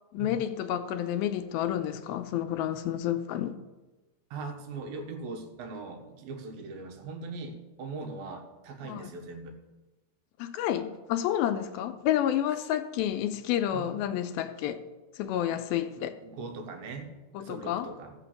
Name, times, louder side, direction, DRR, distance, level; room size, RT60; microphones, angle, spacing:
voice 1, 0.1-3.5 8.8-9.1 10.4-14.8 15.2-16.1 17.3-17.9, left 11 dB, 85° left, 2.5 m, -30 dB
voice 2, 4.3-9.6 13.7-13.9 16.0-17.1 17.4-18.1, right 3 dB, 75° right, 3.0 m, -40 dB
15.0 x 6.0 x 7.1 m
omnidirectional pair, 4.3 m